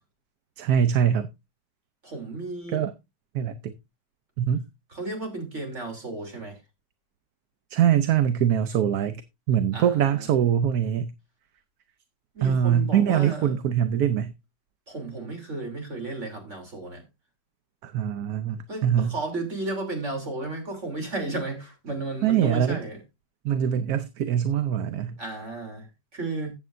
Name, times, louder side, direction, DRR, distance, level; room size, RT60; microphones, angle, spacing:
voice 1, 0.6-1.3 2.7-2.9 3.3-3.7 4.4-4.6 7.7-9.2 9.5-11.1 12.4-14.3 17.8-19.1 22.2-22.8 23.4-25.2, right 9 dB, 65° right, 1.1 m, -23 dB
voice 2, 2.0-2.8 4.9-6.6 9.7-10.3 12.3-13.6 14.9-17.0 18.7-23.0 25.2-25.9 26.1-26.5, right 2 dB, 40° right, 3.5 m, -33 dB
14.5 x 8.4 x 2.6 m
omnidirectional pair, 1.8 m